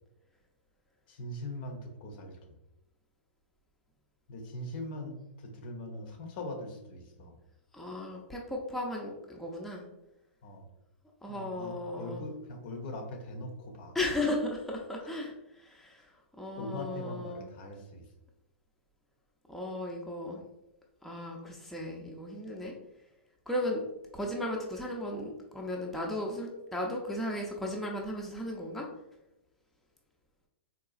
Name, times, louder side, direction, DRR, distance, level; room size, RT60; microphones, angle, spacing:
voice 1, 1.1-2.6 4.3-7.3 10.4-10.7 11.3-13.9 15.0-15.2 16.6-18.0, left 1 dB, 50° left, 4 dB, 0.6 m, -41 dB
voice 2, 7.7-9.9 11.2-12.2 13.9-16.1 16.4-17.4 19.5-20.4 21.0-22.7 23.5-23.8 24.1-28.9, left 1 dB, 5° left, -2 dB, 0.4 m, -35 dB
3.8 x 2.3 x 2.4 m, 0.92 s
hypercardioid pair, 115°, 7 cm